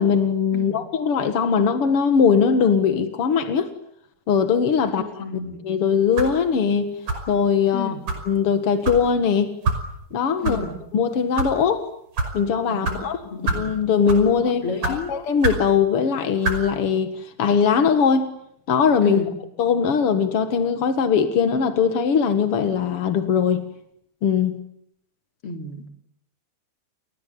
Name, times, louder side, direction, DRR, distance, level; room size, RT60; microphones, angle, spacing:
voice 1, 0.0-3.7 4.3-5.2 5.6-6.9 7.3-7.9 8.2-9.5 10.1-10.6 10.9-11.8 12.3-13.2 13.5-18.3 18.7-19.2 19.6-23.6 24.2-24.6, left 6 dB, 55° left, 9 dB, 1.6 m, -20 dB
voice 2, 5.0-5.6 7.7-8.0 10.4-10.8 12.7-13.0 13.3-13.8 14.6-15.1 19.0-19.3 25.4-25.9, left 4 dB, 35° left, 6 dB, 3.7 m, -31 dB
sound 1, 6.2-6.4 7.1-7.4 8.1-8.2 8.8-9.0 9.6-9.8 10.4-10.6 11.2-11.5 12.2-12.3 12.8-13.0 13.5-13.7 14.1-14.3 14.8-15.0 15.4-15.7 16.4-16.6, right 3 dB, 40° right, 6.5 m, -25 dB
30.0 x 20.5 x 9.4 m, 0.73 s
omnidirectional pair, 5.0 m